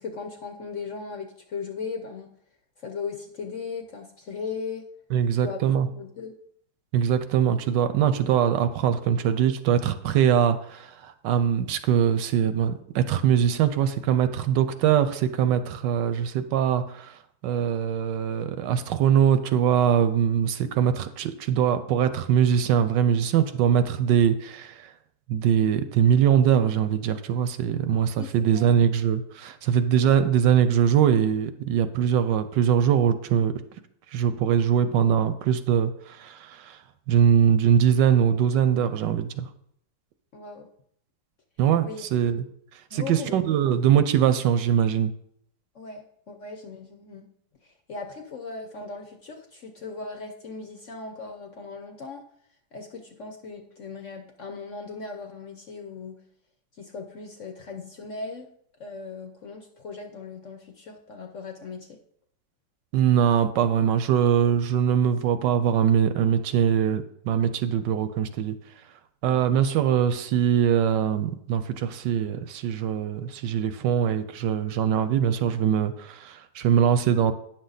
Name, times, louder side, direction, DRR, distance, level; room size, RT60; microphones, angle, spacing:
voice 1, 0.0-2.3 2.8-4.9 5.4-5.6 5.9-6.3 28.2-28.6 40.3-40.7 41.8-42.0 42.9-43.4 45.7-47.3 47.6-52.2 52.7-56.2 56.7-58.5 58.8-62.0 69.3-69.6, left 4 dB, 55° left, 3 dB, 0.9 m, -38 dB
voice 2, 5.1-5.9 6.9-17.1 17.4-24.9 25.3-33.6 34.1-36.8 37.1-39.5 41.6-42.4 42.9-45.1 62.9-68.6 69.2-77.3, right 8 dB, 75° right, 11 dB, 1.2 m, -22 dB
9.2 x 6.5 x 4.0 m, 0.69 s
omnidirectional pair, 2.0 m